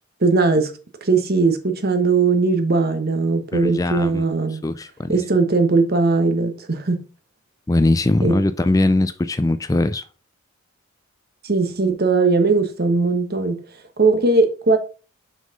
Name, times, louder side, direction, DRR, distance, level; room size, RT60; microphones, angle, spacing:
voice 1, 0.2-0.7 1.0-4.6 5.1-7.0 8.2-8.3 11.4-13.6 14.0-14.8, right 3 dB, 50° right, 1.1 m, -19 dB
voice 2, 3.5-4.2 4.6-5.1 7.7-10.0, left 2 dB, 15° left, 0.4 m, -20 dB
6.2 x 5.6 x 3.8 m
head